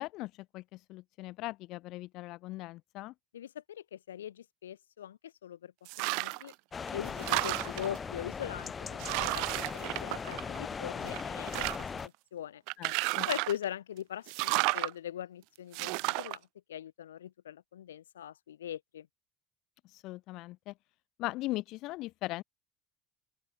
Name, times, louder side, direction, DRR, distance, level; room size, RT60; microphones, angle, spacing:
voice 1, 0.0-3.1 12.8-13.3 19.8-20.7 21.2-22.4, left 19 dB, 65° left, 2.3 m, -39 dB
voice 2, 3.3-6.5 6.9-12.6 13.3-19.1, left 10 dB, 85° left, 5.2 m, -41 dB
sound 1, 5.9-6.5 6.9-8.0 8.6-8.7 9.0-10.7 11.1-12.0 12.7-13.6 14.3-14.9 15.7-16.4, right 32 dB, 70° right, 1.3 m, -32 dB
sound 2, 6.7-12.1, left 5 dB, 35° left, 2.3 m, -39 dB
open air
hypercardioid pair, 60°, 0 cm